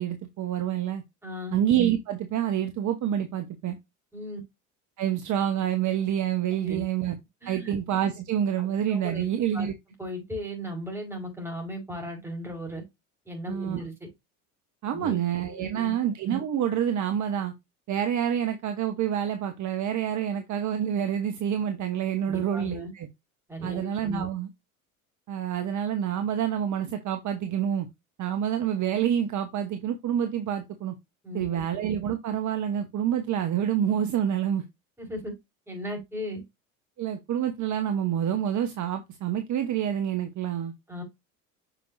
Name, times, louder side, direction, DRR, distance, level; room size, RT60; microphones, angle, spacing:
voice 1, 0.0-1.0 1.5-3.8 5.0-7.2 7.4-9.7 13.5-13.8 14.8-17.5 17.9-23.1 23.6-24.5 25.3-27.9 28.2-30.9 31.3-34.6 37.0-40.7, right 10 dB, 40° right, 1.1 m, -27 dB
voice 2, 1.2-1.6 4.1-4.4 6.6-6.8 7.4-7.7 8.6-9.3 9.5-9.7 10.0-12.8 13.2-14.1 14.9-15.2 15.5-15.9 22.3-22.9 23.5-24.3 31.2-31.5 35.0-35.3 35.7-36.4 40.9-41.0, equal, 5° right, 5.1 m, -36 dB
6.5 x 6.0 x 2.6 m
hypercardioid pair, 80°, 43 cm